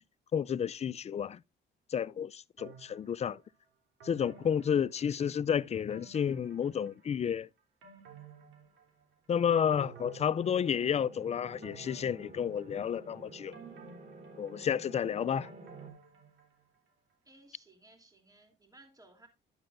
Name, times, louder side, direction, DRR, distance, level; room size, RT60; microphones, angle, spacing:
voice 1, 0.3-1.4 1.9-3.4 4.0-7.5 9.3-13.6 14.4-15.5, left 8 dB, 35° left, 0.4 m, -31 dB
sound 1, 2.6-3.4 4.0-5.4 5.9-7.2 7.6-9.3 9.7-11.1 11.6-13.1 13.5-16.8 17.1-17.2, right 5 dB, 75° right, 3.2 m, -54 dB
sound 2, 9.2-15.9, right 2 dB, 40° right, 2.5 m, -52 dB
voice 2, 17.2-19.3, right 2 dB, 20° right, 3.2 m, -59 dB
12.0 x 8.7 x 2.6 m
cardioid pair, 90°, 20 cm